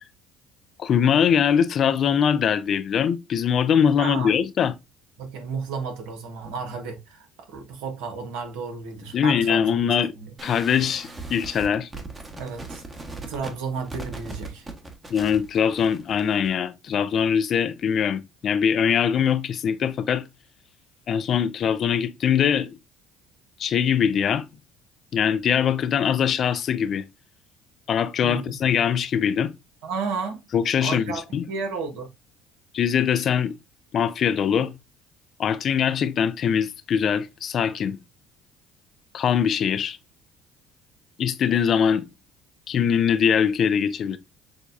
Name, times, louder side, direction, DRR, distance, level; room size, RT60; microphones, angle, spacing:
voice 1, 0.8-4.7 9.1-10.1 10.4-11.9 15.1-20.3 21.1-22.7 23.6-24.5 25.1-27.1 27.9-29.5 30.5-31.5 32.7-33.6 33.9-34.8 35.4-38.0 39.1-40.0 41.2-42.1 42.7-44.2, left 8 dB, 50° left, 0.4 m, -22 dB
voice 2, 4.0-4.3 5.2-10.3 12.4-12.8 13.3-14.7 28.2-28.5 29.8-30.4 30.8-31.2 31.5-32.1, right 5 dB, 75° right, 1.0 m, -32 dB
sound 1, 10.4-16.5, right 3 dB, 25° right, 1.1 m, -39 dB
6.4 x 2.2 x 2.5 m
hypercardioid pair, 65°, 0 cm